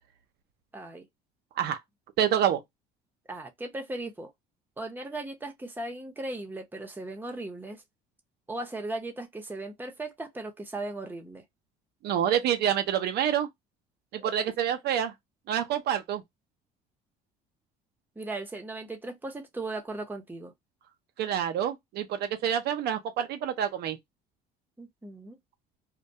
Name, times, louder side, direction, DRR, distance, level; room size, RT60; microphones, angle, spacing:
voice 1, 0.7-1.1 3.3-4.3 4.8-7.8 8.5-11.4 14.2-14.3 18.2-20.5 24.8-25.4, right 2 dB, 10° right, 0.8 m, -37 dB
voice 2, 2.2-2.6 12.0-13.5 14.1-15.1 15.5-16.2 21.2-24.0, right 9 dB, 60° right, 0.5 m, -27 dB
2.2 x 2.1 x 2.7 m
supercardioid pair, 85°, 19 cm